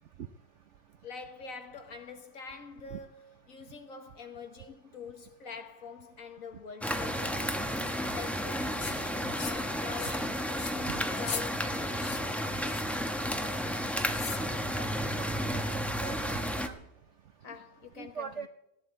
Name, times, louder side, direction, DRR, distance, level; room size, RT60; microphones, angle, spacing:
voice 1, 1.0-12.0 12.6-12.9 17.4-18.5, left 5 dB, 50° left, 1.5 m, -45 dB
sound 1, 6.8-16.7, equal, ahead, 0.6 m, -32 dB
sound 2, 8.8-9.0 9.4-9.7 10.0-10.2 10.5-10.8 11.2-11.4 12.0-12.2 12.7-13.0 14.1-14.5, left 6 dB, 70° left, 2.0 m, -39 dB
voice 2, 15.2-16.7 18.0-18.5, right 6 dB, 70° right, 0.6 m, -42 dB
19.0 x 14.0 x 4.4 m
omnidirectional pair, 2.0 m